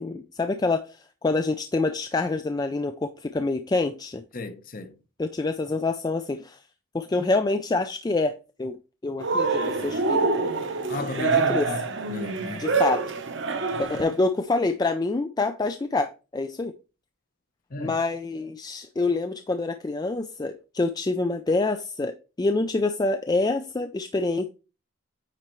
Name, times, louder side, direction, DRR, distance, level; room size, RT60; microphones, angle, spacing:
voice 1, 0.0-4.2 5.2-6.6 6.9-8.8 9.0-10.5 11.0-11.7 12.6-13.0 13.8-16.7 17.8-24.5, left 3 dB, 20° left, 0.3 m, -26 dB
voice 2, 4.3-5.0 10.9-12.7 17.7-18.0, left 2 dB, 40° left, 0.8 m, -35 dB
Cheering, 9.2-14.2, right 4 dB, 60° right, 0.9 m, -26 dB
8.9 x 4.3 x 3.0 m
head